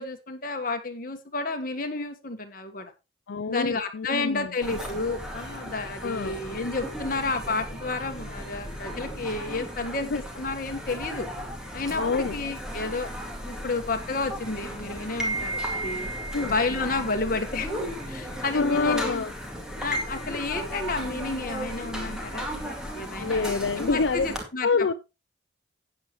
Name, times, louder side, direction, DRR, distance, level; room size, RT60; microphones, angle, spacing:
voice 1, 0.0-2.9 3.5-11.3 11.7-13.1 13.4-16.1 16.5-17.7 18.0-19.1 19.8-23.5 23.8-24.9, left 3 dB, 45° left, 1.5 m, -31 dB
voice 2, 3.3-4.5 6.0-6.4 6.8-6.9 8.4-8.5 10.0-10.2 11.9-12.4 16.3-16.5 18.5-19.3 23.1-24.3 24.6-24.9, left 4 dB, 65° left, 0.5 m, -26 dB
sound 1, 4.6-24.4, equal, 5° right, 2.2 m, -35 dB
12.5 x 8.9 x 3.1 m
head